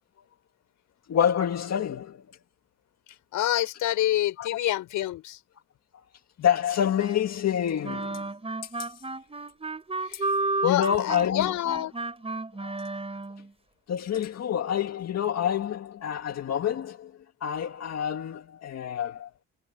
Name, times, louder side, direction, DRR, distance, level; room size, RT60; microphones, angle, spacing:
voice 1, 1.1-2.3 4.4-4.6 6.4-8.3 8.6-9.0 10.6-11.8 12.6-13.0 13.9-19.3, left 9 dB, 60° left, 1.9 m, -28 dB
voice 2, 3.3-5.4 10.1-10.3 10.6-11.9, left 13 dB, 85° left, 5.8 m, -27 dB
sound 1, 7.8-13.5, right 3 dB, 20° right, 4.8 m, -32 dB
cardioid pair, 90°, 30 cm